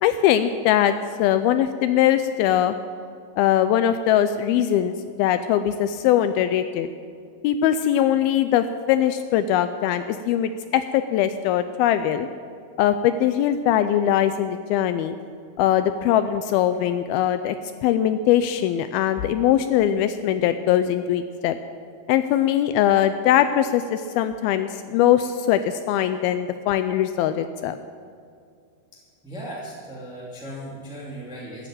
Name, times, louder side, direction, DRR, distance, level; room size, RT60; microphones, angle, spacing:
voice 1, 0.0-2.8 3.4-6.9 7.4-12.3 12.8-15.2 15.6-17.6 17.8-21.6 22.1-27.8, left 11 dB, 85° left, 10 dB, 2.1 m, -21 dB
voice 2, 28.9-31.7, right 1 dB, ahead, -6 dB, 1.7 m, -37 dB
15.0 x 9.3 x 9.1 m, 2.3 s
omnidirectional pair, 4.9 m